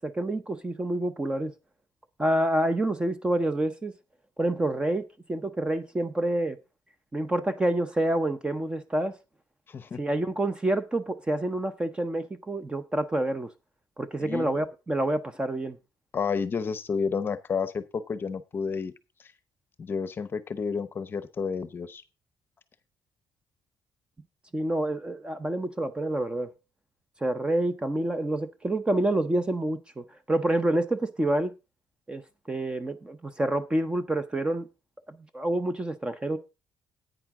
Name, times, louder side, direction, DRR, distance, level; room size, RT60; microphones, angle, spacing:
voice 1, 0.0-1.5 2.2-3.9 4.4-6.6 7.1-9.2 10.0-13.5 14.0-15.8 24.5-26.5 27.2-31.5 32.1-32.2 32.5-34.7 35.1-36.4, right 1 dB, 15° right, 0.6 m, -28 dB
voice 2, 9.7-10.0 14.2-14.5 16.1-18.9 19.8-22.0, left 5 dB, 30° left, 0.8 m, -30 dB
10.5 x 9.0 x 3.6 m
cardioid pair, 165°, 7 cm